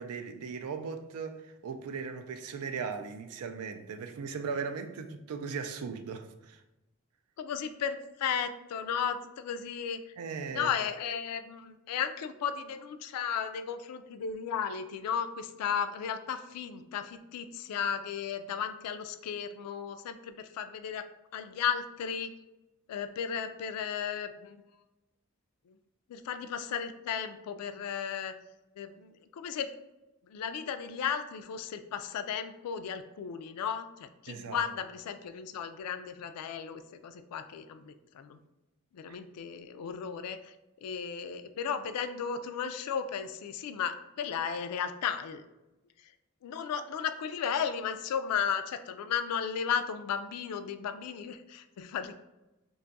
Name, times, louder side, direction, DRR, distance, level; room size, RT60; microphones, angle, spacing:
voice 1, 0.0-6.6 10.2-10.7 34.3-34.6 39.1-39.2, right 5 dB, 80° right, 0.4 m, -38 dB
voice 2, 7.4-10.0 10.5-21.1 21.3-22.3 22.9-24.6 25.7-25.8 26.1-28.3 28.8-29.7 30.3-38.4 38.9-45.4 46.4-52.1, left 7 dB, 90° left, 0.3 m, -35 dB
2.6 x 2.3 x 3.9 m
head